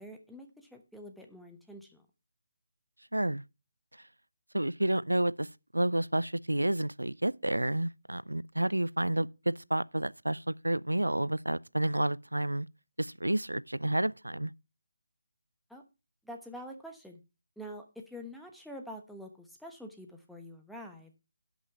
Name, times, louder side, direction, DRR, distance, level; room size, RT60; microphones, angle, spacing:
voice 1, 0.0-2.0 15.7-15.8 16.2-17.2 17.6-21.1, equal, ahead, 1.0 m, -46 dB
voice 2, 3.1-3.4 4.5-5.5 5.7-12.7 13.0-14.5, right 1 dB, 80° right, 0.4 m, -30 dB
10.5 x 6.2 x 4.4 m
figure-of-eight pair, 150°, 0 cm